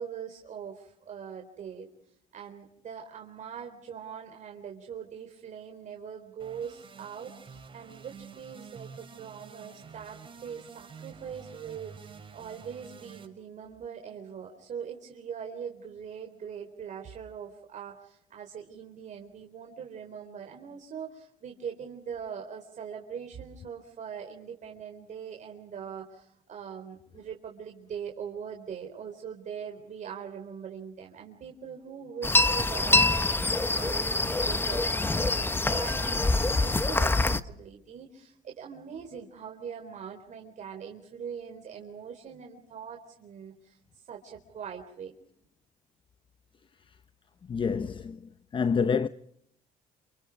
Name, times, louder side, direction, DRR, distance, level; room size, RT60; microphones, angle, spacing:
voice 1, 0.0-1.9 2.3-43.8 44.1-45.1, right 7 dB, 55° right, 4.1 m, -42 dB
sound 1, 6.4-13.3, right 6 dB, 35° right, 6.0 m, -49 dB
sound 2, 32.2-37.4, left 2 dB, 15° left, 1.1 m, -25 dB
voice 2, 47.5-48.2 48.5-49.1, left 6 dB, 35° left, 0.8 m, -27 dB
29.0 x 28.5 x 4.8 m
supercardioid pair, 85°, 15 cm